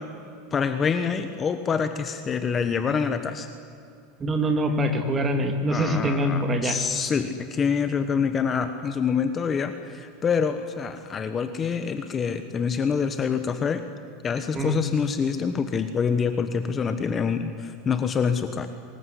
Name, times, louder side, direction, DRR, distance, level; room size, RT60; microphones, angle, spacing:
voice 1, 0.5-3.5 5.7-13.8 14.2-18.7, left 6 dB, 20° left, 9 dB, 1.3 m, -26 dB
voice 2, 4.2-6.8 14.5-14.8, right 1 dB, 20° right, 6 dB, 2.9 m, -24 dB
24.5 x 21.0 x 9.8 m, 2.5 s
supercardioid pair, 150°, 0 cm